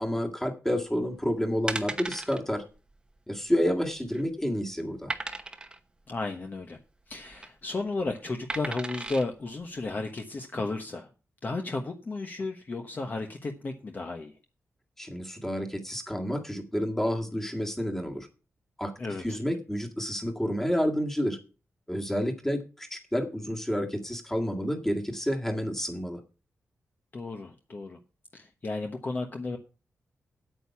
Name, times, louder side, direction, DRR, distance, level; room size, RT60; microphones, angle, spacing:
voice 1, 0.0-2.6 3.3-5.1 15.0-18.3 18.8-18.9 19.2-21.4 21.9-26.2, equal, 5° left, 3 dB, 1.9 m, -29 dB
sound 1, 1.0-1.2 1.7-2.4 2.7-2.9 3.2-3.3 3.8-4.3 5.1-5.8 7.1-7.5 8.5-9.2 9.8-9.9, right 2 dB, 15° right, 1.0 m, -35 dB
voice 2, 6.1-6.8 7.1-11.1 11.4-14.3 19.0-19.4 27.1-28.0 28.3-29.6, left 3 dB, 35° left, 4 dB, 1.1 m, -33 dB
9.0 x 8.7 x 5.9 m, 0.34 s
wide cardioid pair, 150°, 5 cm